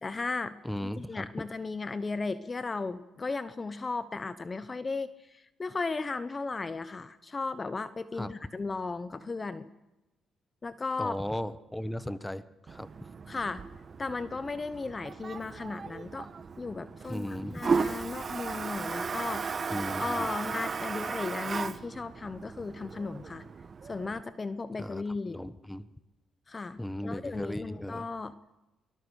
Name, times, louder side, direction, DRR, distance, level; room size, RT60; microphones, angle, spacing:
voice 1, 0.0-0.6 1.0-9.7 10.6-11.2 13.3-13.6 14.0-16.3 16.6-19.4 20.0-23.4 23.8-25.4 26.5-28.3, left 3 dB, 30° left, 14 dB, 1.0 m, -35 dB
voice 2, 0.6-1.3 8.2-8.3 11.0-12.9 17.1-17.6 19.7-20.3 24.8-25.9 26.8-28.0, left 1 dB, 5° left, 14 dB, 1.3 m, -36 dB
Toilet flush, 12.7-24.2, right 5 dB, 40° right, 1.3 m, -36 dB
24.0 x 20.0 x 6.6 m, 1.0 s
cardioid pair, 90°, 0 cm